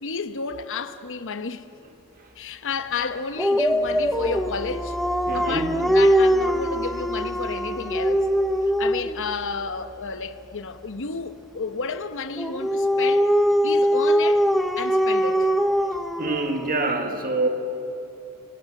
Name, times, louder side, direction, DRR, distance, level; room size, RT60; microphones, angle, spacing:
voice 1, 0.0-1.6 2.4-5.0 5.3-8.3 8.8-13.3 13.6-14.5 14.8-15.5, left 4 dB, 60° left, 0.9 m, -31 dB
Dog, 3.4-9.2 12.4-16.9, equal, ahead, 0.8 m, -22 dB
sound 1, 3.8-11.4, left 2 dB, 15° left, 2.8 m, -41 dB
voice 2, 5.3-5.7 16.2-17.5, right 2 dB, 40° right, 1.7 m, -25 dB
29.0 x 18.5 x 7.6 m
head